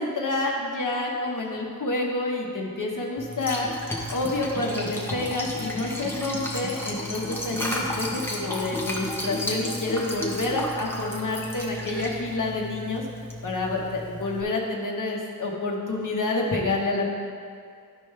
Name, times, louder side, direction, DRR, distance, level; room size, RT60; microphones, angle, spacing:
voice 1, 0.0-3.7 4.1-13.0 13.4-17.1, left 2 dB, 60° left, -1 dB, 1.3 m, -28 dB
Liquid, 3.2-14.4, left 1 dB, 5° left, 1.2 m, -33 dB
12.5 x 5.3 x 3.4 m, 2.3 s
wide cardioid pair, 90°, 35 cm